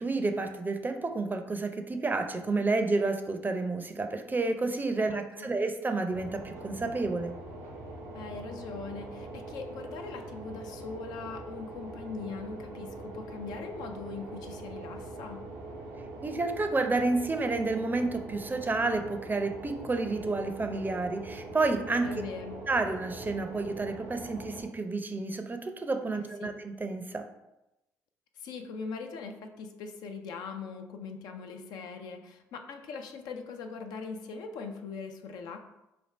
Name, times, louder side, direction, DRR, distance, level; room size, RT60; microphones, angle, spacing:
voice 1, 0.0-7.3 16.2-22.1 22.7-27.2, right 3 dB, 25° right, 6 dB, 0.5 m, -30 dB
voice 2, 5.1-5.5 8.1-15.4 22.0-22.6 26.1-26.5 28.4-35.6, left 5 dB, 75° left, 5 dB, 0.4 m, -41 dB
sound 1, 6.1-24.6, right 2 dB, 85° right, 0.6 m, -43 dB
3.4 x 2.4 x 4.1 m, 0.92 s
supercardioid pair, 55°, 7 cm